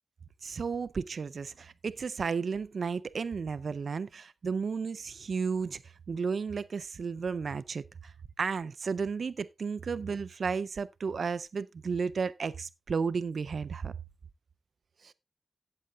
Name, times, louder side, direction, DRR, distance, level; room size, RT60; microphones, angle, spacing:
voice 1, 0.4-13.9 15.0-15.1, right 5 dB, 60° right, 0.4 m, -33 dB
14.0 x 8.8 x 2.5 m
wide cardioid pair, 150°, 0 cm